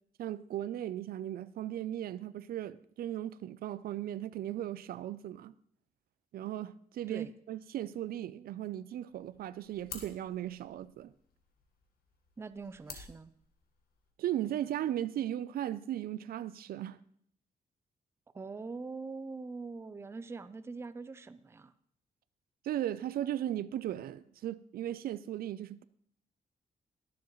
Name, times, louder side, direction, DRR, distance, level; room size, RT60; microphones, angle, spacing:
voice 1, 0.2-5.5 6.3-11.1 14.2-17.0 22.6-25.8, right 12 dB, 80° right, 0.4 m, -37 dB
sound 1, 9.1-14.1, left 6 dB, 85° left, 1.5 m, -52 dB
voice 2, 12.4-13.3 18.3-21.7, right 4 dB, 15° right, 0.4 m, -43 dB
21.0 x 7.2 x 3.1 m
wide cardioid pair, 155°, 15 cm